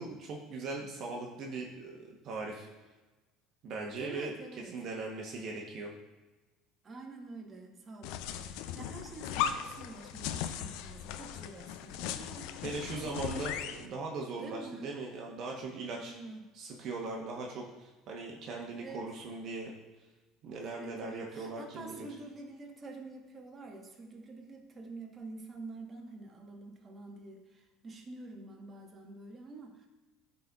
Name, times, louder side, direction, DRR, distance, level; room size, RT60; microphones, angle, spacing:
voice 1, 0.0-2.7 3.6-4.3 4.7-5.9 12.6-16.1 16.5-19.7 20.4-22.1, right 3 dB, 55° right, -1 dB, 1.0 m, -39 dB
voice 2, 4.0-4.9 6.8-12.5 12.9-13.1 14.3-14.9 16.0-16.5 18.7-19.0 20.6-29.9, right 3 dB, 30° right, 1 dB, 1.2 m, -47 dB
sound 1, 8.0-13.9, left 9 dB, 75° left, 0.4 m, -38 dB
11.5 x 4.1 x 2.4 m, 1.2 s
supercardioid pair, 100°, 0 cm